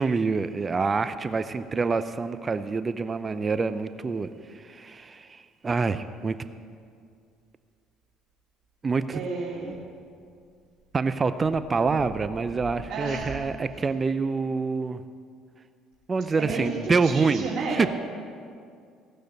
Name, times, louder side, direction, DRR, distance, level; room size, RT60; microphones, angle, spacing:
voice 1, 0.0-4.3 4.5-6.4 8.8-9.2 10.9-15.0 16.1-17.5 17.8-17.9, right 4 dB, 30° right, 11 dB, 0.6 m, -26 dB
voice 2, 9.1-9.8 12.9-13.4 16.4-17.8, right 3 dB, 55° right, -6 dB, 2.8 m, -31 dB
17.0 x 6.5 x 7.9 m, 2.2 s
hypercardioid pair, 70°, 0 cm